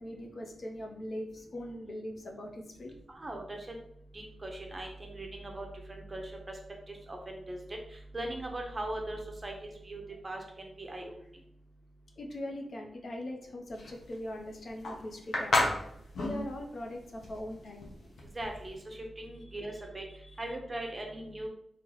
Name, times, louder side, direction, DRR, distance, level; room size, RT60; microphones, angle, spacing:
voice 1, 0.0-2.9 12.2-15.7 16.2-17.9 20.2-20.4, left 1 dB, 55° left, 2 dB, 0.6 m, -41 dB
voice 2, 3.1-3.6 4.1-6.2 6.9-7.6 8.1-11.1 18.4-20.0 20.4-21.5, right 1 dB, 25° right, 2 dB, 0.7 m, -40 dB
sound 1, 13.7-18.8, left 2 dB, 75° left, 0.9 m, -32 dB
3.0 x 2.9 x 3.8 m, 0.73 s
wide cardioid pair, 130°, 0 cm